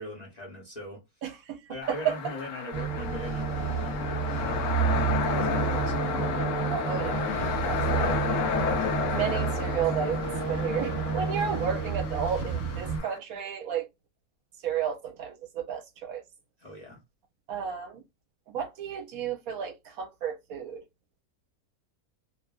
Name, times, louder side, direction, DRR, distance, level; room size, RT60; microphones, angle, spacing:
voice 1, 0.0-1.0 1.7-6.3 7.7-8.2 16.6-17.0, left 1 dB, 35° left, 0.8 m, -41 dB
voice 2, 1.2-1.6 1.9-2.2 6.7-7.2 7.6-8.4 9.1-10.2 10.5-13.9 14.6-16.2 17.5-18.0 18.5-20.8, right 8 dB, 70° right, 1.0 m, -32 dB
sound 1, 1.8-13.2, left 6 dB, 70° left, 0.8 m, -32 dB
sound 2, 2.7-13.0, right 7 dB, 35° right, 1.0 m, -30 dB
2.7 x 2.4 x 2.3 m
omnidirectional pair, 1.6 m